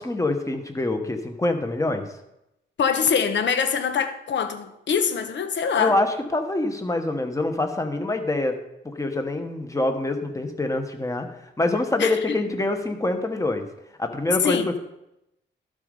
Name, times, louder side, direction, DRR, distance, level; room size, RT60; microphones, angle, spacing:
voice 1, 0.0-2.1 5.8-8.6 8.8-11.3 11.6-13.7 14.0-14.6, left 2 dB, 15° left, 6 dB, 1.2 m, -25 dB
voice 2, 2.8-6.0 12.0-12.4 14.4-14.7, left 7 dB, 70° left, 8 dB, 1.0 m, -24 dB
12.0 x 5.1 x 5.4 m, 0.85 s
cardioid pair, 110°, 19 cm